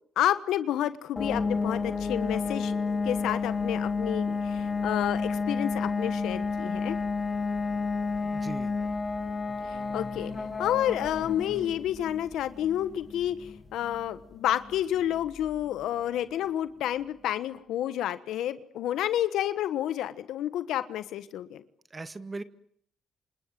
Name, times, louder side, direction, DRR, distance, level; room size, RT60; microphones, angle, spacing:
voice 1, 0.2-7.0 9.7-10.3 10.6-21.6, left 11 dB, 80° left, 13 dB, 1.2 m, -30 dB
sound 1, 1.2-15.7, left 4 dB, 25° left, 3.3 m, -31 dB
voice 2, 8.2-8.7 21.9-22.4, right 3 dB, 25° right, 13 dB, 1.4 m, -38 dB
sound 2, 9.5-12.1, left 5 dB, 45° left, 7.4 m, -49 dB
27.5 x 25.5 x 7.6 m, 0.64 s
cardioid pair, 90°, 0 cm